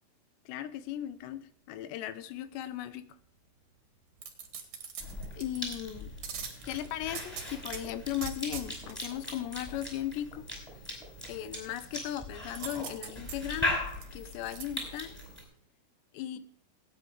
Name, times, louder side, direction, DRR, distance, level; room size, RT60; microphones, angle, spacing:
voice 1, 0.5-3.1 5.4-6.1 6.7-10.5 11.3-13.8 14.1-15.1 16.1-16.4, left 12 dB, 85° left, 12 dB, 3.1 m, -37 dB
sound 1, 4.2-5.8 6.2-7.8 8.2-9.1 12.6-14.6 15.1-15.2, right 7 dB, 55° right, 3.1 m, -42 dB
Cough / Chewing mastication, 5.0-15.4, left 1 dB, 5° left, 4.9 m, -39 dB
18.0 x 9.5 x 3.4 m, 0.63 s
omnidirectional pair, 4.9 m